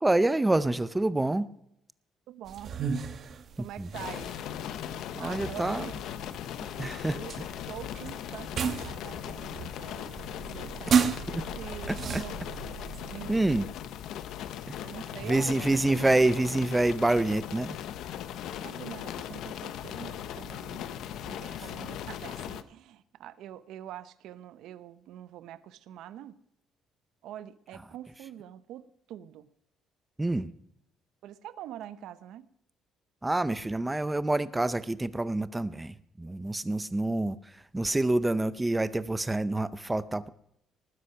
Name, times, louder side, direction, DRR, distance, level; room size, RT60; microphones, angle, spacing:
voice 1, 0.0-1.5 3.6-3.9 5.1-5.9 6.8-7.2 11.3-11.4 11.9-12.2 13.3-13.7 14.7-14.8 15.2-17.8 30.2-30.5 33.2-40.3, right 2 dB, 10° right, 15 dB, 0.6 m, -27 dB
voice 2, 2.3-2.7 3.6-4.3 5.2-6.0 7.1-7.3 7.7-13.7 14.8-15.8 18.6-26.4 27.2-29.5 31.2-32.5, right 11 dB, 70° right, 15 dB, 0.8 m, -45 dB
sound 1, 2.5-13.6, right 6 dB, 40° right, 1.2 m, -34 dB
sound 2, 3.9-22.6, left 10 dB, 70° left, 0.9 m, -39 dB
19.5 x 9.8 x 5.7 m, 0.75 s
cardioid pair, 170°, 0 cm